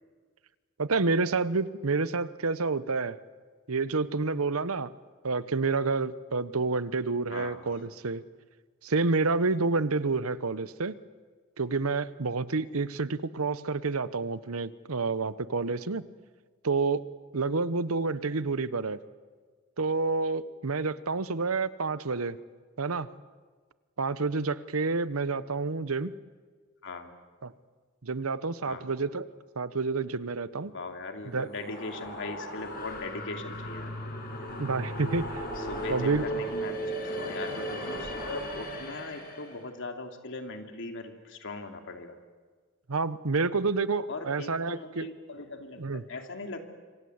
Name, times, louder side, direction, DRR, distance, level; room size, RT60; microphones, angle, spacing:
voice 1, 0.8-3.2 3.7-4.9 5.2-8.2 8.8-11.0 11.6-16.0 16.6-17.1 17.3-19.0 19.8-22.4 22.8-23.1 24.0-26.1 27.4-27.5 28.0-29.2 29.6-30.7 31.3-31.5 34.6-35.4 35.9-36.3 42.9-45.1 45.8-46.0, right 3 dB, 75° right, 16 dB, 0.9 m, -29 dB
voice 2, 7.3-7.8 26.8-27.1 28.7-28.9 30.7-33.9 35.6-42.2 44.1-46.7, left 3 dB, 60° left, 5 dB, 2.8 m, -40 dB
sound 1, 31.3-39.6, equal, 45° left, 7.0 m, -36 dB
26.5 x 25.5 x 8.0 m, 1.5 s
head